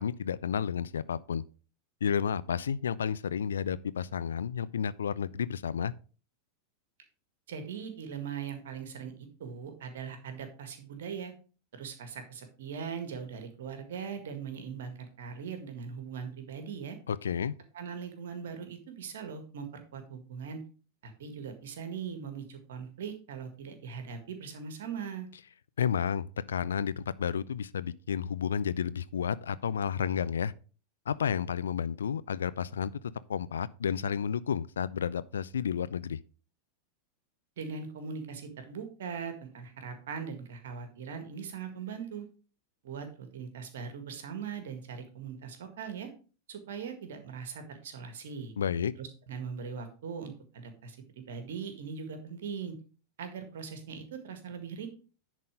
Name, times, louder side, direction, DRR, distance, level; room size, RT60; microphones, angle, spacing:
voice 1, 0.0-1.4 2.0-5.9 17.1-17.5 25.8-30.5 31.1-32.9 33.3-36.2 48.6-48.9, left 7 dB, 65° left, 0.4 m, -31 dB
voice 2, 7.5-11.3 11.7-17.0 17.7-20.6 21.0-25.3 37.6-42.3 42.8-46.1 46.5-48.5 49.0-52.8 53.2-54.9, right 6 dB, 60° right, 1.8 m, -40 dB
10.5 x 4.2 x 5.1 m
figure-of-eight pair, 90°, 0 cm